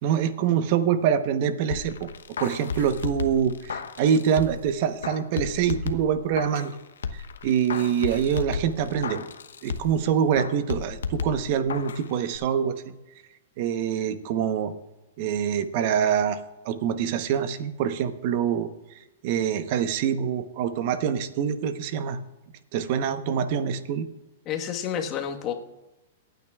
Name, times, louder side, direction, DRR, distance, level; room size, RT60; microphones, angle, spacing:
voice 1, 0.0-2.1 2.4-6.8 7.1-9.2 9.6-12.9 13.6-14.7 15.2-16.4 16.6-18.7 19.2-22.2 22.7-24.1, right 8 dB, 50° right, 11 dB, 1.0 m, -25 dB
sound 1, 1.7-4.7 5.0-6.7 7.0-10.0 10.4-12.0 12.3-12.4, left 6 dB, 90° left, 0.9 m, -33 dB
voice 2, 24.4-25.5, left 8 dB, 35° left, 3 dB, 1.4 m, -29 dB
23.5 x 9.3 x 2.4 m, 1.0 s
hypercardioid pair, 135°, 0 cm